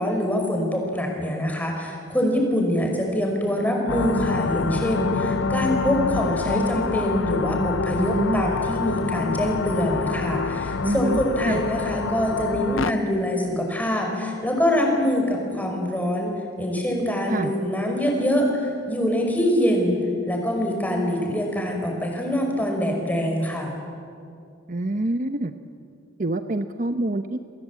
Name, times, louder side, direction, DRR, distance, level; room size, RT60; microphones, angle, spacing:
voice 1, 0.0-23.7, equal, 10° left, 1 dB, 5.5 m, -24 dB
sound 1, 3.9-12.9, left 4 dB, 85° left, 0.7 m, -27 dB
voice 2, 8.0-8.5 10.8-11.2 11.5-11.6 17.3-17.5 24.7-25.5 26.2-27.4, right 2 dB, 40° right, 9 dB, 0.9 m, -26 dB
29.5 x 23.0 x 8.6 m, 2.5 s
head